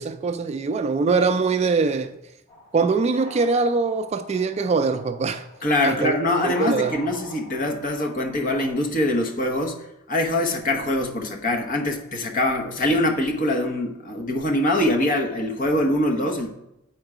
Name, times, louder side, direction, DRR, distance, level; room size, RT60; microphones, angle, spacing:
voice 1, 0.0-2.2 2.7-5.5 5.8-6.2 6.4-7.0, right 4 dB, 30° right, 0.3 m, -22 dB
sound 1, 2.5-8.7, left 1 dB, 25° left, 3.1 m, -44 dB
voice 2, 5.6-16.5, left 1 dB, 40° left, 0.9 m, -23 dB
7.9 x 4.5 x 4.8 m
head